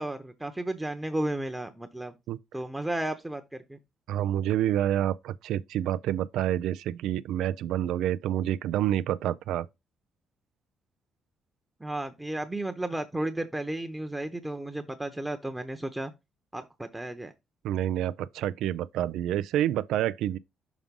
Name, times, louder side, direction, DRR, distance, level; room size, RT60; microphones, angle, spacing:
voice 1, 0.0-2.1 2.5-3.4 3.7-3.8 11.8-16.1 16.5-17.3, right 1 dB, 10° right, 0.9 m, -33 dB
voice 2, 4.1-9.7 17.6-20.4, right 11 dB, 85° right, 0.4 m, -28 dB
6.1 x 3.8 x 5.3 m
cardioid pair, 90°, 0 cm